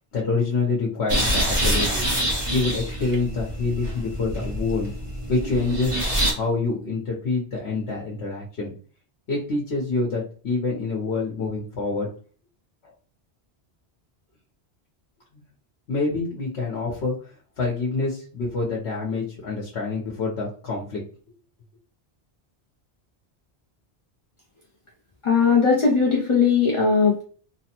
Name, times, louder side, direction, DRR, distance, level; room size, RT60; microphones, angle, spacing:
voice 1, 0.1-2.0 2.5-4.9 5.3-6.0 6.3-8.7 9.3-12.1 15.9-21.0, left 3 dB, 85° left, -3 dB, 1.2 m, -26 dB
sound 1, 1.1-6.3, right 1 dB, 30° right, 0.9 m, -26 dB
voice 2, 25.2-27.2, left 5 dB, 45° left, 0 dB, 0.4 m, -19 dB
3.1 x 2.1 x 2.9 m, 0.41 s
omnidirectional pair, 1.1 m